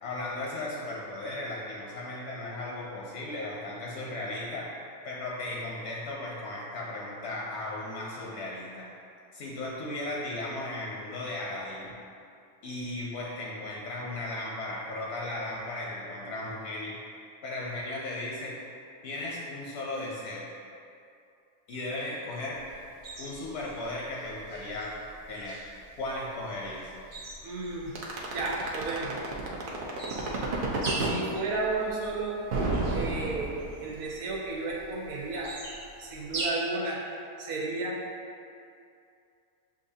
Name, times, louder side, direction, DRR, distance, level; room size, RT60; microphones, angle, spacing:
voice 1, 0.0-4.7 5.0-8.9 9.3-11.9 12.6-17.0 17.4-18.6 19.0-20.4 21.7-22.6 23.2-25.0 25.3-25.6 26.0-26.9, left 2 dB, 65° left, -4 dB, 0.7 m, -36 dB
sound 1, 22.5-36.5, right 2 dB, 40° right, 0.8 m, -43 dB
voice 2, 27.4-27.9 28.3-29.2 31.0-32.4 32.9-33.5 33.8-35.5 36.0-37.0 37.4-38.0, right 3 dB, 90° right, -4 dB, 1.3 m, -33 dB
sound 2, 28.0-31.2 32.5-33.9, right 3 dB, 65° right, 0.5 m, -30 dB
6.9 x 2.6 x 2.7 m, 2.5 s
omnidirectional pair, 1.6 m